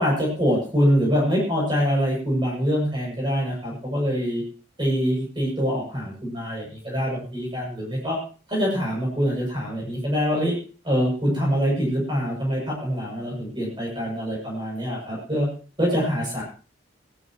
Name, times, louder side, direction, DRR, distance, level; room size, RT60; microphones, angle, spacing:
voice 1, 0.0-4.4 4.8-8.2 8.5-10.5 10.8-15.5 15.8-16.4, equal, 25° right, -3 dB, 7.2 m, -24 dB
19.0 x 14.5 x 3.1 m, 0.37 s
head